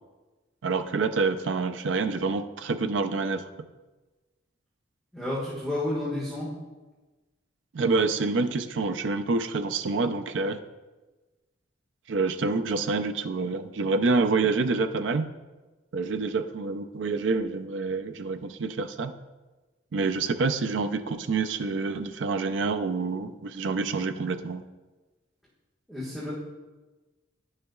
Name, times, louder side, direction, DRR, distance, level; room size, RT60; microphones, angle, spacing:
voice 1, 0.6-3.4 7.7-10.6 12.1-15.2 15.9-19.1 19.9-24.6, right 4 dB, 75° right, 9 dB, 0.5 m, -27 dB
voice 2, 5.1-6.5 25.9-26.3, left 1 dB, ahead, -11 dB, 1.5 m, -31 dB
10.5 x 6.5 x 2.3 m, 1.2 s
head